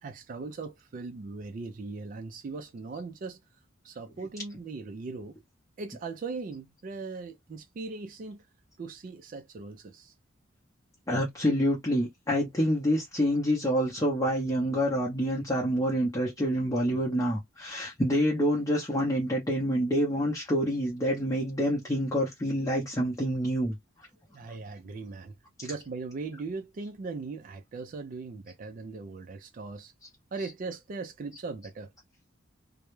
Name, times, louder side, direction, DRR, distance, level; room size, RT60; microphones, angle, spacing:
voice 1, 0.0-3.4 3.8-5.4 5.8-8.4 8.8-10.1 17.8-17.9 24.3-25.3 25.6-29.9 30.3-31.9, right 3 dB, 40° right, 0.3 m, -39 dB
voice 2, 11.1-23.7, equal, 15° left, 0.6 m, -27 dB
2.2 x 2.0 x 3.0 m
head